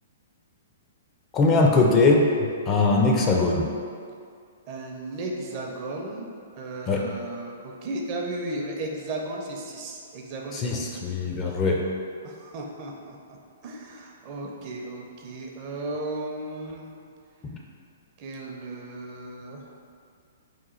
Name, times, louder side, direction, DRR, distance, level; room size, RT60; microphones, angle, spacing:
voice 1, 1.3-2.3 2.7-3.7 6.9-7.0 10.5-11.8 17.4-17.5, left 3 dB, 25° left, -1 dB, 0.4 m, -21 dB
voice 2, 4.7-6.3 6.6-11.5 12.2-13.2 13.6-16.9 18.2-19.7, right 2 dB, 40° right, 0 dB, 0.5 m, -35 dB
3.0 x 2.3 x 3.8 m, 2.2 s
hypercardioid pair, 135°, 0 cm